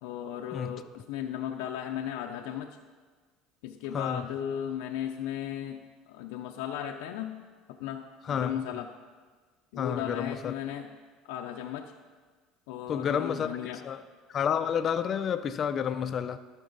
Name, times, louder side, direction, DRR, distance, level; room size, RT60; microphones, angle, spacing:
voice 1, 0.0-2.8 3.6-5.8 6.1-7.4 7.7-8.9 9.7-10.9 11.2-11.9 12.7-13.8, left 10 dB, 90° left, 0.5 m, -36 dB
voice 2, 3.9-4.3 8.2-8.6 9.8-10.5 12.9-14.0 14.3-16.4, left 8 dB, 35° left, 0.5 m, -30 dB
15.5 x 6.0 x 4.0 m
cardioid pair, 140°, 0 cm